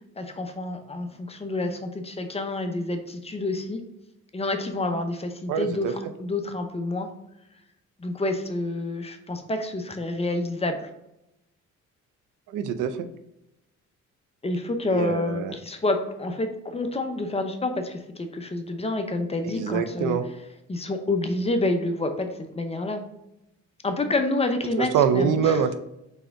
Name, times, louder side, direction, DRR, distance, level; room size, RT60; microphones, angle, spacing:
voice 1, 0.2-3.8 4.3-7.1 8.0-10.9 14.4-20.2 20.7-22.3 22.6-23.0 23.8-25.6, left 2 dB, 20° left, 5 dB, 0.7 m, -28 dB
voice 2, 5.5-5.9 12.5-13.1 14.8-15.5 19.4-20.2 24.8-25.7, right 7 dB, 90° right, 10 dB, 0.5 m, -24 dB
4.1 x 3.4 x 3.6 m, 0.86 s
cardioid pair, 90°, 30 cm